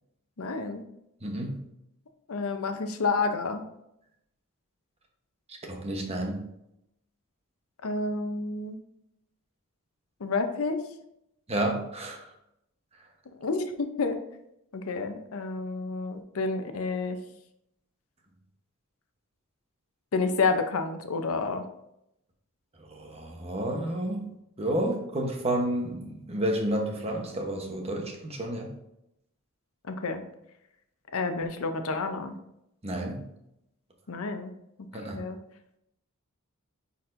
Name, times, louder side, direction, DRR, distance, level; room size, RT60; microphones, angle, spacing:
voice 1, 0.4-0.8 2.3-3.6 7.8-8.8 10.2-10.8 13.4-14.2 14.7-17.2 20.1-21.6 29.9-30.2 31.1-32.3 34.1-34.5 35.1-35.4, left 4 dB, 75° left, 7 dB, 0.7 m, -29 dB
voice 2, 1.2-1.6 5.5-6.5 11.5-12.3 22.8-24.3 24.6-28.7 32.8-33.3 34.9-35.2, right 1 dB, 30° right, 2 dB, 1.0 m, -31 dB
9.8 x 4.2 x 2.6 m, 0.82 s
head